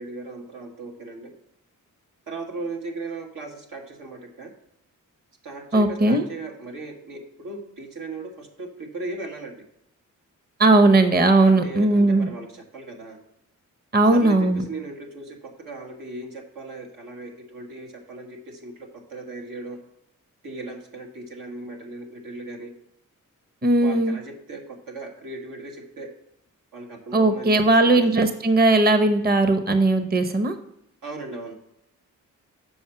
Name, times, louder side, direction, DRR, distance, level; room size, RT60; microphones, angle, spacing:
voice 1, 0.0-1.3 2.3-4.5 5.4-9.6 11.4-13.2 14.1-19.8 20.4-22.7 23.8-26.1 26.7-28.1 31.0-31.5, right 2 dB, 90° right, 2 dB, 1.7 m, -37 dB
voice 2, 5.7-6.2 10.6-12.3 13.9-14.6 23.6-24.2 27.1-30.6, right 2 dB, 30° right, 9 dB, 0.8 m, -18 dB
7.1 x 5.1 x 5.7 m, 0.80 s
cardioid pair, 85°, 32 cm